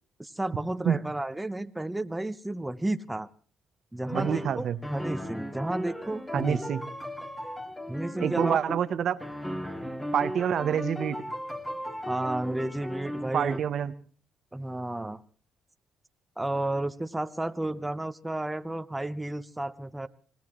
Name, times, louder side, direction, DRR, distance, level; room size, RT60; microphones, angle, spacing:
voice 1, 0.2-3.3 3.9-4.7 4.9-6.6 7.9-8.6 12.1-13.6 14.5-15.2 16.4-20.1, right 1 dB, 10° right, 10 dB, 0.8 m, -32 dB
sound 1, 4.1-8.8 9.2-13.6, equal, 5° left, 2.1 m, -36 dB
voice 2, 4.1-4.8 6.3-6.8 8.2-9.2 10.1-11.2 13.3-13.9, right 8 dB, 65° right, 13 dB, 0.8 m, -27 dB
25.5 x 17.5 x 3.1 m, 0.43 s
cardioid pair, 90°, 0 cm